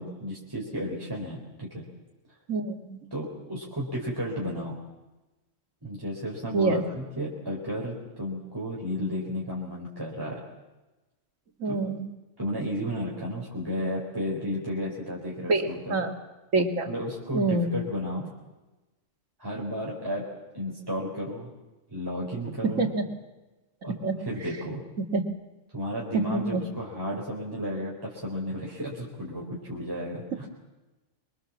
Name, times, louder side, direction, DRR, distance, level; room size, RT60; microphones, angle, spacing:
voice 1, 0.0-1.8 3.1-4.8 5.8-10.4 11.6-11.8 12.4-16.0 16.9-18.3 19.4-20.3 20.5-21.5 21.9-22.9 23.8-24.8 25.7-30.5, equal, 15° right, -3 dB, 4.1 m, -33 dB
voice 2, 2.5-3.0 6.5-6.8 11.6-12.1 15.5-16.1 16.5-16.9 17.3-17.7 22.8-22.9 24.0-24.1 25.1-25.2 26.3-26.6, right 3 dB, 80° right, 4 dB, 2.7 m, -26 dB
26.5 x 23.5 x 7.4 m, 1.1 s
omnidirectional pair, 1.3 m